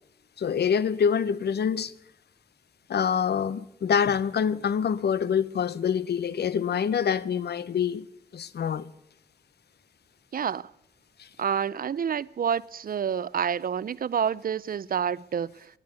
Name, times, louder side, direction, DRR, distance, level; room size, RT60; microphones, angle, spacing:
voice 1, 0.4-1.9 2.9-8.0 8.3-8.9 11.2-11.3, left 7 dB, 80° left, 0.7 m, -26 dB
voice 2, 10.3-10.7 11.4-15.5, right 7 dB, 60° right, 0.5 m, -28 dB
12.0 x 10.5 x 8.5 m
cardioid pair, 45°, 17 cm